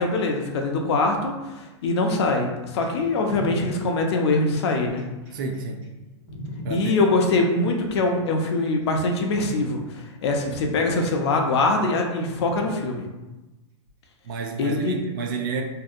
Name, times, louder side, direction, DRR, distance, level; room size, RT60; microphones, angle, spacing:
voice 1, 0.0-5.0 6.7-13.1 14.6-15.0, left 2 dB, 65° left, 2 dB, 0.5 m, -23 dB
sound 1, 2.8-6.7 7.7-8.3 8.8-9.0 9.3-9.7 10.9-11.0 12.3-12.7 13.9-14.0, equal, 90° right, 1.4 m, -37 dB
voice 2, 5.3-5.8 6.6-6.9 14.2-15.6, right 4 dB, 45° right, 3 dB, 0.4 m, -30 dB
2.7 x 2.5 x 2.4 m, 1.1 s
supercardioid pair, 165°, 15 cm